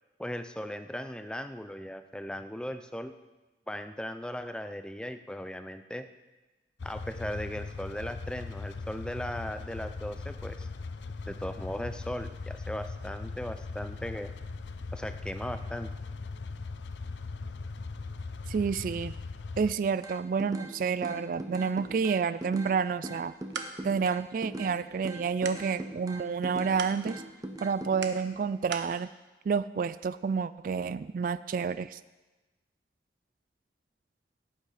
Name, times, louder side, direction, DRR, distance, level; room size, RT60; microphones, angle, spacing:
voice 1, 0.2-3.1 3.7-6.1 6.8-10.7 11.3-14.3 14.9-15.9, equal, 5° left, 9 dB, 0.5 m, -38 dB
sound 1, 6.8-19.7, left 3 dB, 90° left, 0.6 m, -39 dB
voice 2, 18.5-19.1 19.6-23.3 23.8-27.2 27.6-29.1 29.5-32.0, right 5 dB, 50° right, 15 dB, 0.3 m, -29 dB
sound 2, 20.0-20.7 21.0-22.7 23.0-24.7 25.0-26.8 27.1-27.9, right 1 dB, 20° right, 1.0 m, -40 dB
sound 3, 23.2-29.0, right 5 dB, 90° right, 1.1 m, -44 dB
17.5 x 9.1 x 4.9 m, 1.2 s
head